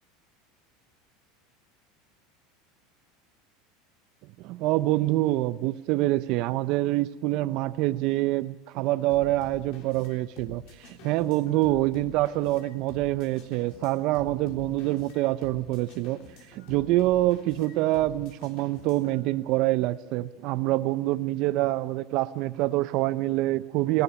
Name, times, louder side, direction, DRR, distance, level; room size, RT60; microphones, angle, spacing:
voice 1, 4.4-16.2 16.5-24.0, right 17 dB, 60° right, 14 dB, 0.7 m, -26 dB
sound 1, 9.1-19.2, left 4 dB, 60° left, 3.6 m, -48 dB
19.5 x 16.0 x 9.4 m, 1.0 s
supercardioid pair, 120°, 0 cm